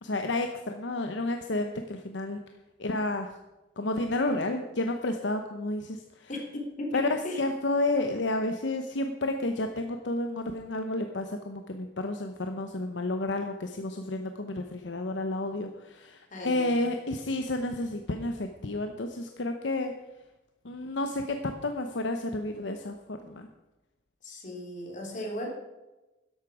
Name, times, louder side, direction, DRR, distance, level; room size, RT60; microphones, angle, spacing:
voice 1, 0.0-2.4 2.8-3.4 3.8-6.3 6.9-19.9 20.6-23.5, left 2 dB, 70° left, 6 dB, 0.9 m, -31 dB
voice 2, 6.3-7.4 16.3-16.7 20.6-20.7 24.2-25.5, left 1 dB, 45° left, 0 dB, 3.3 m, -36 dB
13.0 x 11.0 x 4.9 m, 1.0 s
head